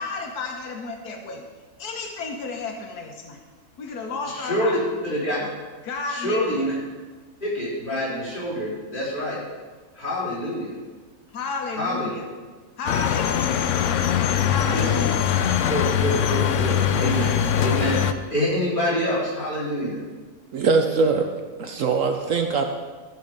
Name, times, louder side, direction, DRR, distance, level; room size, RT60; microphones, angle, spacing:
voice 1, 0.0-1.5 1.8-3.4 3.8-4.8 5.4-5.5 5.8-6.7 11.3-12.3 12.8-13.8 14.5-15.3, left 4 dB, 80° left, 3 dB, 1.6 m, -32 dB
voice 2, 4.2-4.8 5.0-5.4 6.1-6.8 7.4-9.4 10.0-10.7 11.7-12.1 14.7-14.9 15.7-18.0 18.3-20.0, equal, 30° left, -9 dB, 4.4 m, -26 dB
sound 1, 12.9-18.1, left 9 dB, 65° left, 0.8 m, -22 dB
voice 3, 20.5-21.3 21.6-22.6, right 4 dB, 60° right, 5 dB, 1.0 m, -21 dB
14.0 x 6.5 x 5.1 m, 1.4 s
omnidirectional pair, 1.6 m